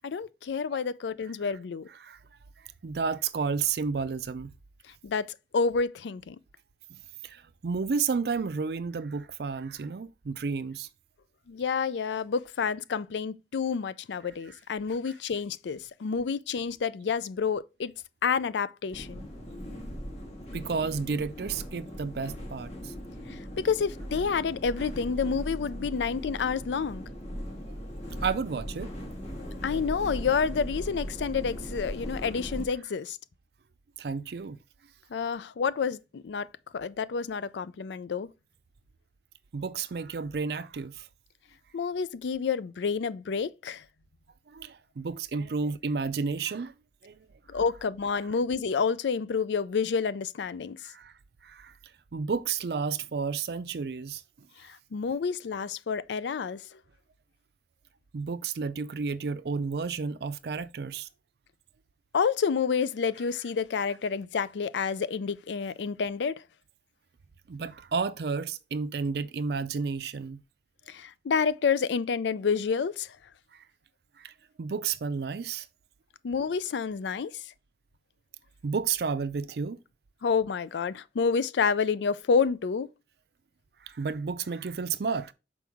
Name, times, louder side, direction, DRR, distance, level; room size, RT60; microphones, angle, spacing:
voice 1, 0.0-1.9 5.0-5.3 5.5-6.4 11.5-17.9 18.2-19.3 23.3-23.4 23.6-27.0 29.6-33.2 35.1-36.5 36.7-38.3 41.7-43.8 47.5-50.8 54.7-56.6 62.1-66.3 70.9-73.1 76.2-77.3 80.2-82.9, left 5 dB, 90° left, 0.4 m, -29 dB
voice 2, 2.8-4.5 6.9-10.9 14.5-14.6 20.5-22.9 27.7-27.8 28.2-28.9 34.0-34.6 39.5-41.1 44.5-46.7 47.0-47.3 50.8-51.1 51.4-51.7 52.1-54.5 58.1-61.1 67.5-70.4 73.5-73.6 74.2-74.3 74.6-75.7 78.6-79.8 83.8-85.3, right 5 dB, 70° right, 0.4 m, -32 dB
sound 1, 18.9-32.7, equal, 40° left, 1.7 m, -39 dB
6.1 x 4.6 x 3.5 m
head